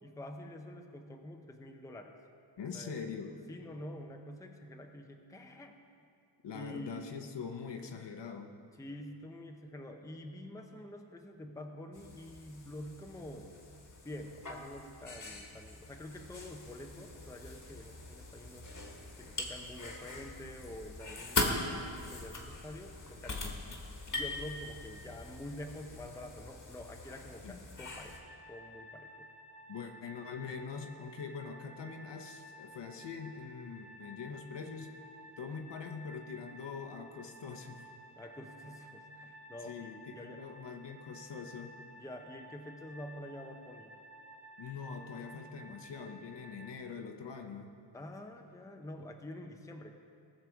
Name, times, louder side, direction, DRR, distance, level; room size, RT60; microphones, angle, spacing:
voice 1, 0.0-2.1 2.7-3.0 3.5-5.7 6.5-7.1 8.8-13.6 14.0-18.7 19.2-23.6 24.1-28.2 28.5-29.3 38.2-40.5 42.0-44.0 47.9-50.0, left 1 dB, 5° left, 3 dB, 0.7 m, -47 dB
voice 2, 2.6-3.4 6.4-8.5 23.4-23.5 27.4-27.6 29.7-34.9 35.4-37.9 39.6-41.7 44.6-47.7, left 5 dB, 60° left, 5 dB, 1.1 m, -43 dB
sound 1, 11.9-28.2, left 2 dB, 40° left, 1.5 m, -41 dB
sound 2, 27.9-46.7, equal, 55° right, 2.4 m, -54 dB
18.5 x 6.7 x 4.6 m, 2.4 s
wide cardioid pair, 120°, 48 cm